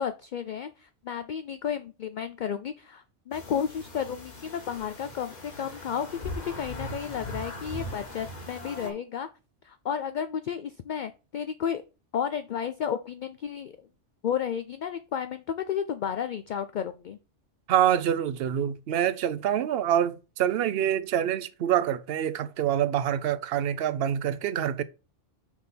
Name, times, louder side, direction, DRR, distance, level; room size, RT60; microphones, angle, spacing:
voice 1, 0.0-9.3 9.6-11.8 12.1-13.9 14.2-17.2, left 8 dB, 60° left, 0.5 m, -32 dB
sound 1, 3.3-8.9, left 1 dB, 35° left, 1.4 m, -40 dB
voice 2, 17.7-24.8, right 10 dB, 60° right, 0.8 m, -26 dB
6.2 x 3.6 x 5.8 m
omnidirectional pair, 1.2 m